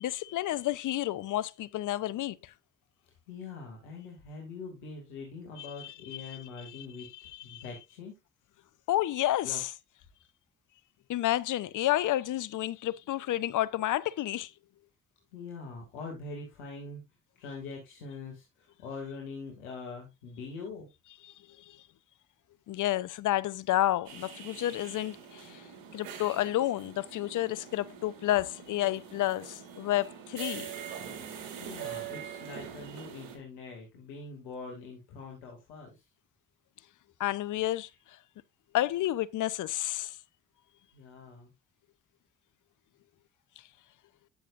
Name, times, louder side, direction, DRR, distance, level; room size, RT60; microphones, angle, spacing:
voice 1, 0.0-2.5 5.6-7.6 8.9-9.7 11.1-14.5 21.2-21.8 22.7-25.7 25.9-30.8 37.2-38.2 38.7-40.2, left 14 dB, 65° left, 0.7 m, -31 dB
voice 2, 3.3-8.1 9.4-9.6 15.3-17.0 17.4-20.9 31.6-36.0 40.9-41.5, left 4 dB, 90° left, 2.3 m, -43 dB
sound 1, 24.0-33.4, right 8 dB, 75° right, 2.6 m, -44 dB
13.0 x 6.8 x 2.5 m
hypercardioid pair, 50°, 34 cm